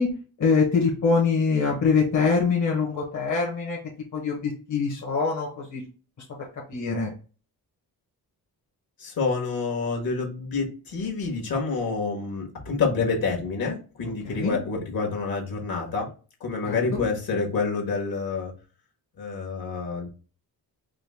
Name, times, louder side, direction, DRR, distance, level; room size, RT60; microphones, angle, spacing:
voice 1, 0.0-3.8 4.1-5.8 6.7-7.1 14.2-14.6 16.6-17.1, left 5 dB, 50° left, -2 dB, 1.1 m, -24 dB
voice 2, 9.0-16.1 16.4-18.5 19.2-20.1, left 4 dB, 65° left, 0 dB, 1.4 m, -28 dB
4.9 x 2.2 x 3.5 m, 0.35 s
wide cardioid pair, 165°, 39 cm